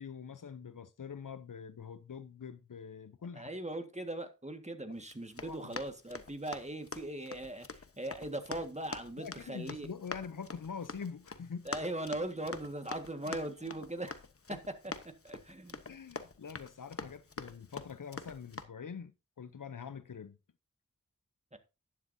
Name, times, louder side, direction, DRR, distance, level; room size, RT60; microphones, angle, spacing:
voice 1, 0.0-3.5 5.4-5.8 9.2-11.7 13.1-13.7 14.5-14.6 15.9-20.4, left 6 dB, 80° left, 0.8 m, -45 dB
voice 2, 3.3-9.9 11.7-14.2 14.5-15.8 21.5-21.6, right 1 dB, 20° right, 1.7 m, -40 dB
Run, 5.0-18.6, left 4 dB, 45° left, 1.1 m, -46 dB
11.5 x 9.8 x 2.7 m
wide cardioid pair, 50°, 31 cm